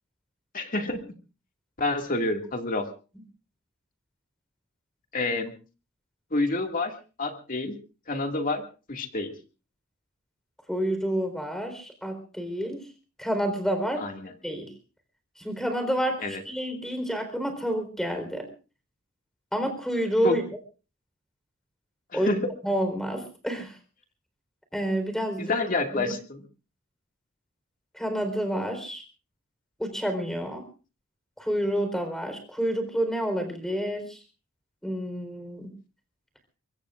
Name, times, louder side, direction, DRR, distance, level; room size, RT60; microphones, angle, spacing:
voice 1, 0.5-1.1 1.8-2.9 5.1-5.5 6.3-6.9 7.2-7.7 8.1-8.6 8.9-9.3 14.0-14.3 16.2-16.4 20.2-20.4 22.1-22.4 25.4-26.5, left 2 dB, 45° left, 4 dB, 2.2 m, -28 dB
voice 2, 10.7-12.9 13.2-14.1 14.4-14.7 15.4-18.5 19.5-20.4 22.1-23.7 24.7-25.5 25.9-26.1 27.9-29.0 29.8-30.6 31.4-34.2 34.8-35.7, equal, ahead, 7 dB, 4.1 m, -29 dB
23.5 x 23.0 x 2.5 m, 0.35 s
head